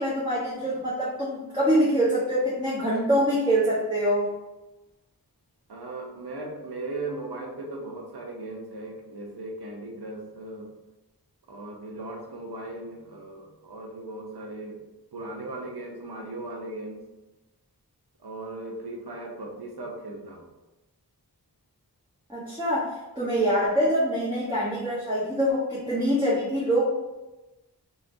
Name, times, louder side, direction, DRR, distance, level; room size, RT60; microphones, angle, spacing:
voice 1, 0.0-4.3 22.3-26.9, equal, 15° right, -8 dB, 1.0 m, -25 dB
voice 2, 5.7-10.7 11.5-14.8 15.1-17.0 18.2-20.5, right 2 dB, 85° right, 0 dB, 0.7 m, -37 dB
3.2 x 3.0 x 2.6 m, 1.0 s
wide cardioid pair, 45°, 38 cm